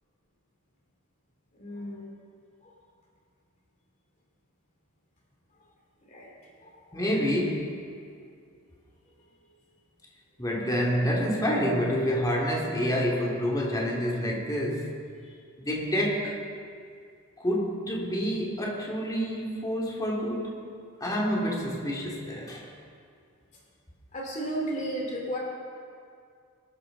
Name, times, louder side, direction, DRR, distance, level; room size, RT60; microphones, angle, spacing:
voice 1, 1.5-2.2 2.6-2.7 6.0-7.0 15.2-15.3 24.1-25.4, right 1 dB, 35° left, -2 dB, 2.6 m, -35 dB
voice 2, 6.9-7.8 10.4-15.0 15.6-16.4 17.4-20.6 21.0-22.7, equal, 15° left, -2 dB, 2.4 m, -28 dB
21.5 x 12.5 x 3.9 m, 2.3 s
head